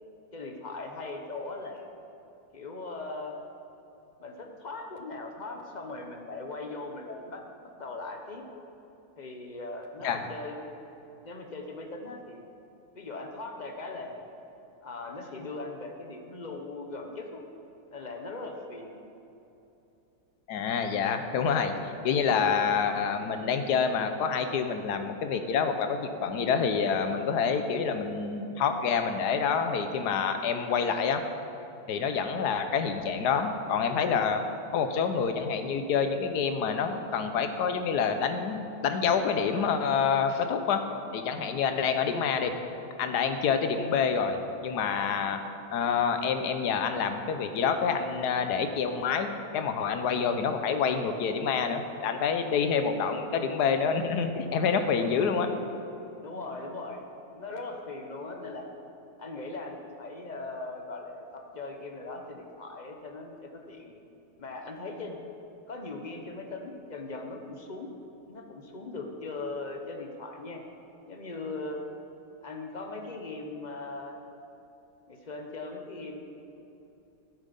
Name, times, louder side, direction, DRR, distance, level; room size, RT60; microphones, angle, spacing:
voice 1, 0.3-1.9 2.5-3.4 4.2-8.4 9.2-10.7 11.2-12.4 12.9-14.3 14.8-17.4 17.9-19.0 41.8-41.9 56.2-57.0 57.3-58.7 59.2-63.9 64.4-65.2 65.7-67.9 68.3-70.6 71.1-71.8 72.4-74.2 75.1-76.2, left 3 dB, 35° left, 3 dB, 0.9 m, -39 dB
voice 2, 20.5-31.2 31.9-34.4 34.7-40.8 41.1-42.5 43.0-45.4 45.7-55.5, left 6 dB, 75° left, 7 dB, 1.4 m, -27 dB
11.5 x 8.4 x 5.3 m, 3.0 s
omnidirectional pair, 1.8 m